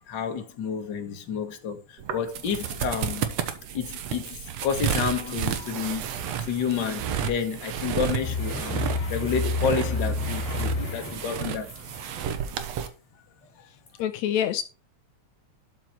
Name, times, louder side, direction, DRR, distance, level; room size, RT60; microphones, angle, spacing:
voice 1, 0.1-3.3 3.7-11.7, left 6 dB, 45° left, 1.8 m, -30 dB
sound 1, 2.0-12.9, right 8 dB, 65° right, 2.2 m, -32 dB
sound 2, 8.2-12.2 13.9-14.0, left 3 dB, 25° left, 3.1 m, -30 dB
voice 2, 14.0-14.6, left 10 dB, 80° left, 1.9 m, -26 dB
12.0 x 6.1 x 4.5 m
omnidirectional pair, 3.3 m